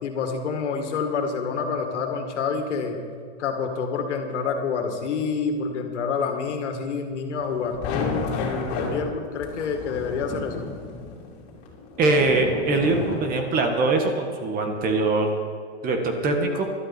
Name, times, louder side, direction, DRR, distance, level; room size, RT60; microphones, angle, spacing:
voice 1, 0.0-3.0 3.4-10.6, left 5 dB, 80° left, 4 dB, 2.3 m, -28 dB
sound 1, 7.4-13.7, left 3 dB, 40° left, 3.5 m, -32 dB
voice 2, 12.0-15.3 15.8-16.7, right 3 dB, 25° right, 4 dB, 1.5 m, -22 dB
16.5 x 12.5 x 4.4 m, 2.1 s
supercardioid pair, 145°, 35 cm